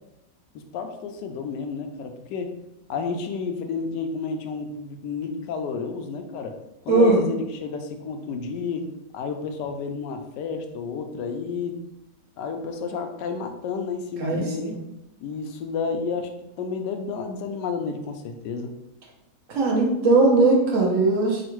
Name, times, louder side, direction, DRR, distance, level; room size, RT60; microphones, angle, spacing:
voice 1, 0.5-2.6 2.9-6.6 6.8-11.8 12.4-14.7 15.2-18.7, left 5 dB, 75° left, 6 dB, 1.2 m, -31 dB
voice 2, 6.9-7.2 14.2-14.8 19.5-21.4, right 3 dB, 55° right, -2 dB, 1.1 m, -19 dB
3.6 x 2.4 x 4.4 m, 0.90 s
omnidirectional pair, 1.9 m